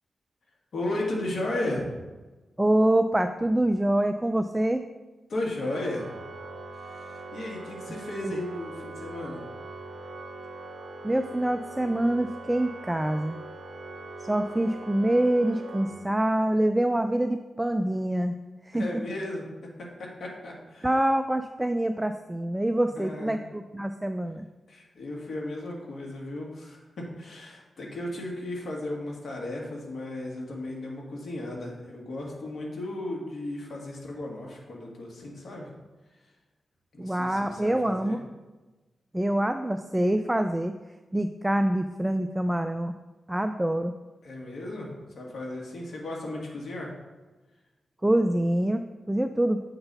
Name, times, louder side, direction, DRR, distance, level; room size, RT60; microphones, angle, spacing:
voice 1, 0.7-1.9 5.3-6.1 6.8-9.4 18.7-19.4 19.8-20.9 22.9-23.4 24.7-35.7 36.9-38.2 44.2-46.9, left 1 dB, 70° left, -2 dB, 1.8 m, -35 dB
voice 2, 2.6-4.8 8.2-8.4 11.0-13.4 14.3-18.4 18.6-19.0 20.8-24.5 37.0-38.2 39.1-40.7 41.1-42.9 43.3-43.9 48.0-49.6, right 1 dB, 10° right, 8 dB, 0.3 m, -25 dB
Organ, 5.6-16.5, right 2 dB, 70° right, 0.9 m, -42 dB
7.8 x 4.0 x 5.4 m, 1.2 s
cardioid pair, 80°, 0 cm